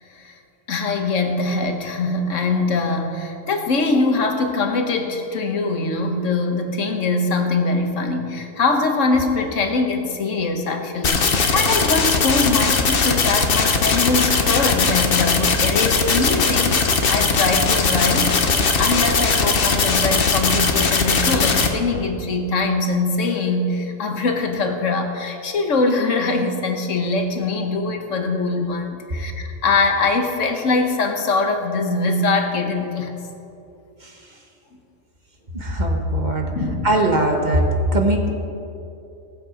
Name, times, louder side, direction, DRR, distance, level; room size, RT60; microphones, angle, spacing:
voice 1, 0.7-18.3 18.8-33.2 36.5-37.0, left 3 dB, 80° left, 4 dB, 1.5 m, -22 dB
sound 1, 11.0-21.7, left 4 dB, 50° left, 1.1 m, -19 dB
voice 2, 35.5-36.5 36.8-37.6 37.9-38.3, right 1 dB, 40° right, 2 dB, 1.3 m, -20 dB
18.0 x 7.5 x 5.1 m, 2.8 s
omnidirectional pair, 1.3 m